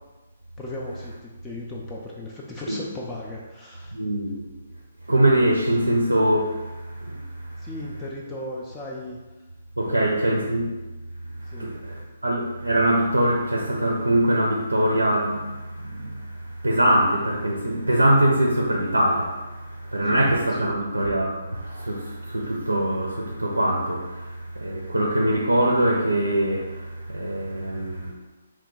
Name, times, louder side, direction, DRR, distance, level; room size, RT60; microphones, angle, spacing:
voice 1, 0.6-3.9 7.6-9.2 9.9-10.6 11.5-11.7 20.0-20.3 20.6-20.7, left 1 dB, 10° left, -4 dB, 0.3 m, -37 dB
voice 2, 3.9-4.4 5.1-7.7 9.8-10.7 11.3-28.1, right 1 dB, 80° right, 0 dB, 0.4 m, -23 dB
2.9 x 2.2 x 4.1 m, 1.2 s
figure-of-eight pair, 130°, 0 cm